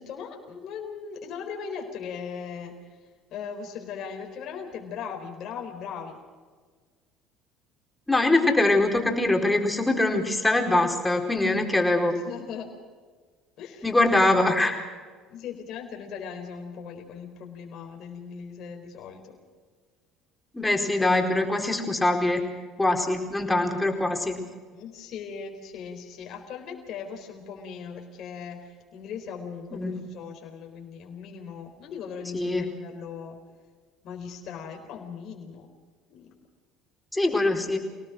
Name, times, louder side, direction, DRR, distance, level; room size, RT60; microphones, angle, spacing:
voice 1, 0.0-6.2 12.1-12.7 13.6-14.2 15.3-19.4 24.7-33.4 34.0-35.7 36.1-36.3, left 6 dB, 60° left, 2 dB, 4.2 m, -39 dB
voice 2, 8.1-12.2 13.8-14.8 20.5-22.4 22.8-24.5 29.7-30.0 32.3-32.7 37.1-37.8, left 2 dB, 10° left, 3 dB, 4.5 m, -23 dB
26.5 x 18.5 x 6.4 m, 1.5 s
hypercardioid pair, 65°, 0 cm